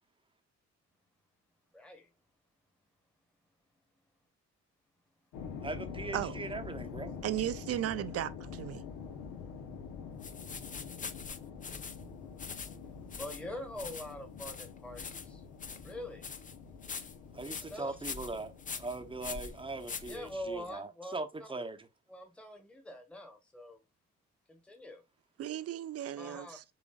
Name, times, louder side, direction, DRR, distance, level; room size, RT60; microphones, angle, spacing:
voice 1, 1.7-2.1 13.2-15.4 15.8-16.2 17.5-17.9 20.0-21.1 21.4-21.5 22.1-23.8 24.5-25.0 26.2-26.6, left 1 dB, 5° left, 1.1 m, -44 dB
sound 1, 5.3-20.5, left 6 dB, 85° left, 0.9 m, -46 dB
voice 2, 5.6-7.2 17.3-21.9, right 3 dB, 15° right, 0.7 m, -40 dB
voice 3, 7.2-8.8 25.4-26.6, right 12 dB, 55° right, 0.4 m, -35 dB
sound 2, 10.2-20.7, left 5 dB, 25° left, 0.5 m, -44 dB
7.0 x 2.5 x 2.3 m
cardioid pair, 90°, 30 cm